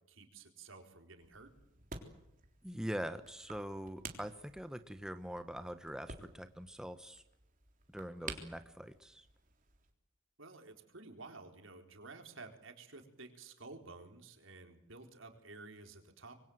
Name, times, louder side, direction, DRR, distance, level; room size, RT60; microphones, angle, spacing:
voice 1, 0.1-1.5 10.4-16.4, right 3 dB, 75° right, 5 dB, 4.2 m, -52 dB
sound 1, 1.2-9.9, right 4 dB, 40° right, 3.6 m, -52 dB
voice 2, 2.6-7.2 7.9-9.3, equal, 5° right, 9 dB, 1.0 m, -43 dB
26.0 x 23.0 x 7.9 m, 0.82 s
head